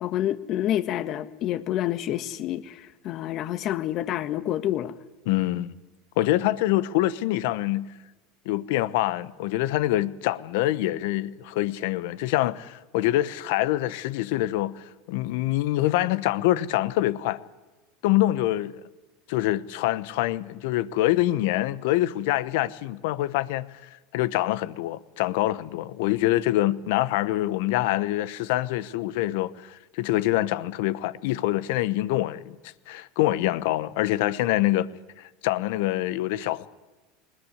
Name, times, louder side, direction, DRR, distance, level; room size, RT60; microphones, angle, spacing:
voice 1, 0.0-4.9, left 12 dB, 50° left, 1.4 m, -28 dB
voice 2, 5.3-5.7 6.2-7.9 8.4-17.4 18.0-18.8 19.3-23.7 24.1-32.6 32.9-34.9 35.2-36.7, left 15 dB, 70° left, 1.0 m, -25 dB
20.0 x 20.0 x 9.7 m
hypercardioid pair, 95°, 0 cm